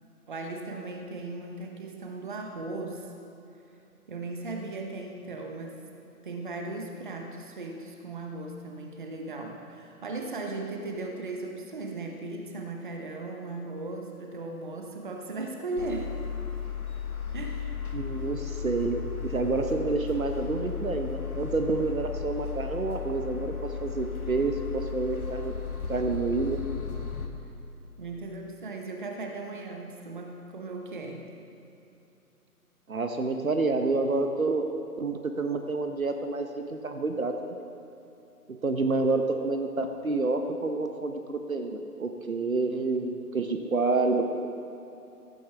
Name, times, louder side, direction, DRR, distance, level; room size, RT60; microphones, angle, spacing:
voice 1, 0.3-3.1 4.1-5.8 6.2-16.2 17.3-17.7 28.0-31.2, right 2 dB, 30° right, 2 dB, 1.1 m, -37 dB
sound 1, 15.8-27.3, left 7 dB, 70° left, 1.5 m, -35 dB
voice 2, 17.9-23.5 23.8-25.5 25.9-26.6 32.9-34.6 35.0-37.6 38.5-44.5, right 3 dB, 60° right, 5 dB, 1.0 m, -28 dB
14.5 x 14.0 x 3.4 m, 2.9 s
figure-of-eight pair, 145°, 46 cm